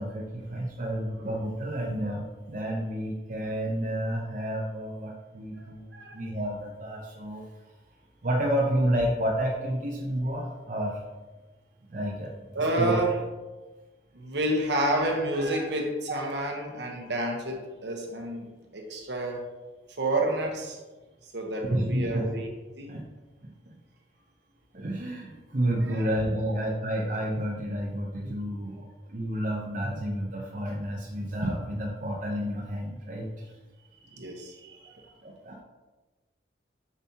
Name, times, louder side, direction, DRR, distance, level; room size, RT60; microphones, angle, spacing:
voice 1, 0.0-7.5 8.2-11.0 11.9-12.9 21.7-22.2 22.9-23.0 23.4-23.8 24.7-33.5 34.2-34.3 35.2-35.6, right 1 dB, 45° right, -2 dB, 0.7 m, -30 dB
voice 2, 12.5-13.2 14.1-19.5 20.0-20.8 21.3-22.5 22.7-22.9 25.9-26.1 34.1-35.0, right 1 dB, 70° right, 1 dB, 1.1 m, -29 dB
7.0 x 5.9 x 2.9 m, 1.2 s
head